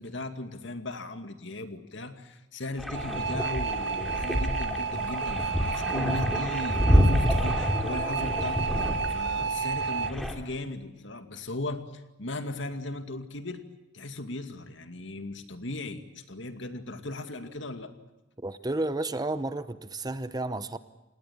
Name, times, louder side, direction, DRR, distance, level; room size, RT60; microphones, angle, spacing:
voice 1, 0.0-13.6 13.9-17.9, left 2 dB, 65° left, 8 dB, 2.3 m, -37 dB
sound 1, 2.8-10.3, equal, ahead, 3.1 m, -28 dB
sound 2, 2.9-10.1, right 5 dB, 60° right, 0.9 m, -31 dB
voice 2, 18.4-20.8, right 2 dB, 20° right, 13 dB, 0.8 m, -31 dB
27.5 x 19.5 x 8.7 m, 1.0 s
head